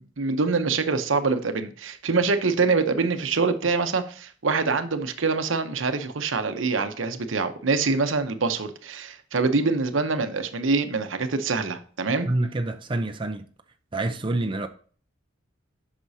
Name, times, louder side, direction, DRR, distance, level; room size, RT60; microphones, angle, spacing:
voice 1, 0.0-12.3, right 4 dB, 85° right, 0.9 m, -25 dB
voice 2, 12.3-13.5 13.9-14.7, right 2 dB, 25° right, 0.6 m, -27 dB
7.9 x 6.0 x 2.8 m
head